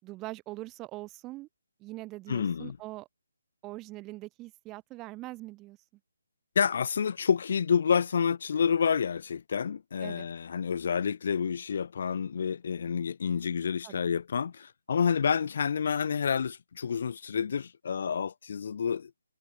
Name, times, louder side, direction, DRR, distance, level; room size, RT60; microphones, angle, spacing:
voice 1, 0.0-1.5 1.8-3.1 3.6-5.8 10.0-10.3 13.8-14.1, right 19 dB, 20° right, 5.2 m, -42 dB
voice 2, 2.3-2.8 6.5-19.1, left 7 dB, 55° left, 2.9 m, -29 dB
figure-of-eight pair, 150°, 0 cm